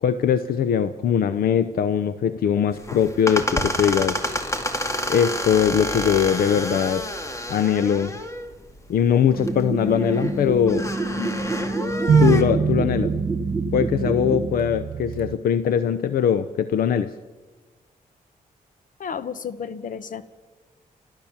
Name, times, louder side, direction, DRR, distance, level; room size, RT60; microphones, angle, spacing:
voice 1, 0.0-4.2 5.1-7.0 7.5-8.1 8.9-10.9 12.2-13.1 13.7-17.1, left 8 dB, 90° left, 12 dB, 0.7 m, -21 dB
sound 1, 2.7-12.4, left 1 dB, 20° left, 2.3 m, -29 dB
sound 2, 9.3-14.5, right 2 dB, 10° right, 3.3 m, -28 dB
sound 3, 12.1-15.4, right 7 dB, 75° right, 0.9 m, -23 dB
voice 2, 19.0-20.2, left 7 dB, 65° left, 13 dB, 1.3 m, -32 dB
30.0 x 12.5 x 7.3 m, 1.3 s
cardioid pair, 80°, 15 cm